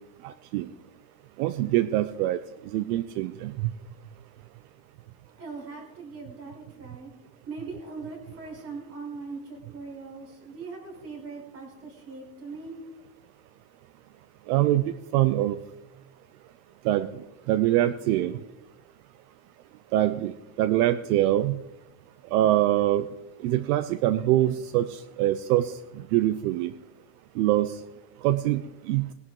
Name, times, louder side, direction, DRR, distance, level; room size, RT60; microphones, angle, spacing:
voice 1, 0.2-0.7 1.4-2.4 2.6-3.7 14.5-15.6 16.8-17.1 17.5-18.4 19.9-21.6 22.3-23.1 23.4-26.7 27.4-27.8 28.2-29.1, right 14 dB, 70° right, 12 dB, 0.8 m, -24 dB
voice 2, 5.4-7.1 7.5-12.7 18.1-18.3, right 4 dB, 30° right, 0 dB, 4.8 m, -40 dB
19.5 x 11.0 x 3.8 m, 0.98 s
cardioid pair, 165°, 46 cm